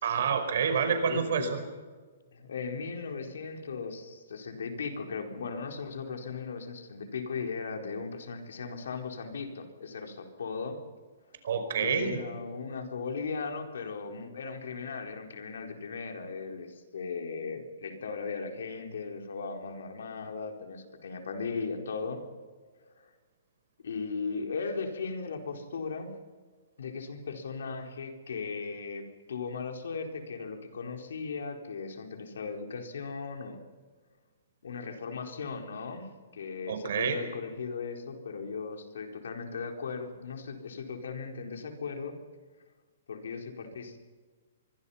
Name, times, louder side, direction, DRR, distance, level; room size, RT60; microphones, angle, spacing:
voice 1, 0.0-1.6 11.4-12.2 36.7-37.2, right 7 dB, 60° right, 8 dB, 5.1 m, -28 dB
voice 2, 0.7-1.5 2.3-10.8 11.8-22.2 23.0-23.1 23.8-26.1 26.8-33.6 34.6-42.2 43.1-44.0, left 5 dB, 80° left, 4 dB, 4.4 m, -37 dB
25.5 x 23.0 x 5.8 m, 1.5 s
hypercardioid pair, 165°, 0 cm